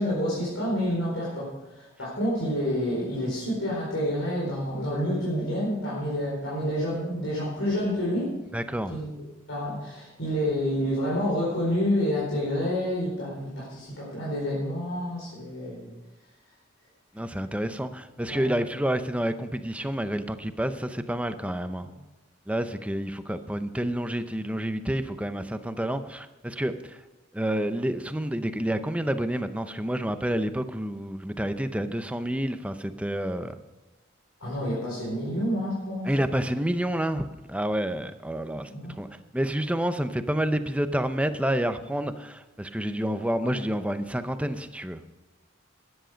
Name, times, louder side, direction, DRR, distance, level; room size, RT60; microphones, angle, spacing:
voice 1, 0.0-8.3 8.9-9.1 9.5-15.9 18.3-18.5 34.4-36.1 38.7-39.0 43.4-43.5, equal, 75° left, -6 dB, 4.5 m, -28 dB
voice 2, 8.5-9.0 17.1-21.9 22.5-27.0 27.3-33.5 36.0-38.7 39.0-39.1 39.3-45.0, right 1 dB, 5° right, 10 dB, 0.6 m, -29 dB
13.0 x 10.5 x 5.1 m, 1.1 s
head